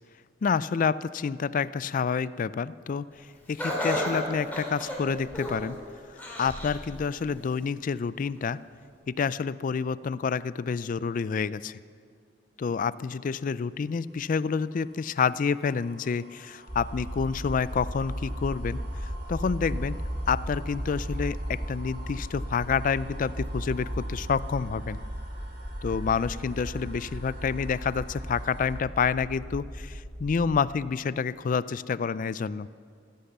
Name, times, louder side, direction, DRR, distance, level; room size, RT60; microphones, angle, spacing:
voice 1, 0.4-3.1 3.5-5.8 6.4-8.6 9.1-11.8 12.6-18.8 19.3-20.0 20.3-25.0 25.8-32.7, left 5 dB, 50° left, 18 dB, 0.3 m, -28 dB
Laughter, 3.6-5.7 6.2-6.8 7.3-7.4 8.4-8.5, equal, 10° left, 4.0 m, -32 dB
sound 1, 13.2-28.7, right 1 dB, 90° right, 3.6 m, -50 dB
sound 2, 16.7-30.6, equal, 20° right, 2.2 m, -36 dB
16.0 x 13.5 x 6.7 m, 2.2 s
head